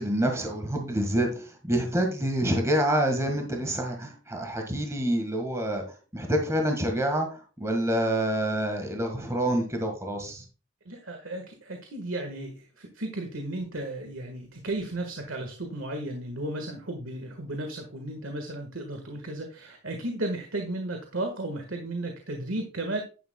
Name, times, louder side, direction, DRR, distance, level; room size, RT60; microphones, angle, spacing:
voice 1, 0.0-5.8 6.1-10.4, right 1 dB, 15° right, 3 dB, 1.7 m, -27 dB
voice 2, 10.8-23.0, right 1 dB, 80° right, 5 dB, 1.6 m, -34 dB
10.5 x 10.0 x 2.3 m, 0.34 s
head